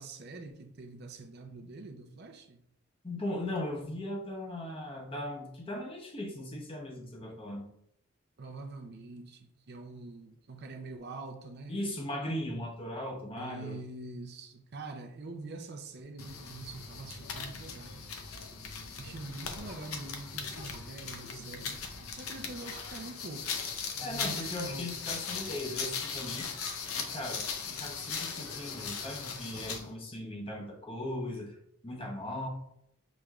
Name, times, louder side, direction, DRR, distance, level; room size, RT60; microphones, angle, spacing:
voice 1, 0.0-2.6 8.4-11.8 13.4-18.2 19.0-21.8 22.1-25.0, right 2 dB, 50° right, 0.5 m, -45 dB
voice 2, 3.0-7.7 11.7-13.8 24.0-26.5 27.0-31.6 31.8-32.5, left 1 dB, 25° left, 0.8 m, -38 dB
sound 1, 16.2-29.9, left 5 dB, 85° left, 0.6 m, -39 dB
6.0 x 3.2 x 2.4 m
head